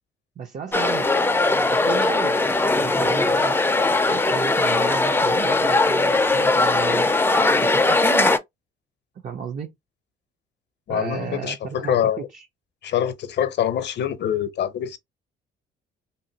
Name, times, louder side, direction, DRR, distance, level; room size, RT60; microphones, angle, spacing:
voice 1, 0.4-1.1 1.6-2.4 2.8-3.6 4.1-7.1 7.5-8.4 9.2-9.7 10.9-12.4, right 6 dB, 40° right, 0.5 m, -33 dB
sound 1, 0.7-8.4, left 2 dB, 10° left, 0.4 m, -20 dB
voice 2, 10.9-12.3 12.8-15.0, left 10 dB, 60° left, 0.6 m, -25 dB
2.9 x 2.7 x 2.7 m
cardioid pair, 90°, 20 cm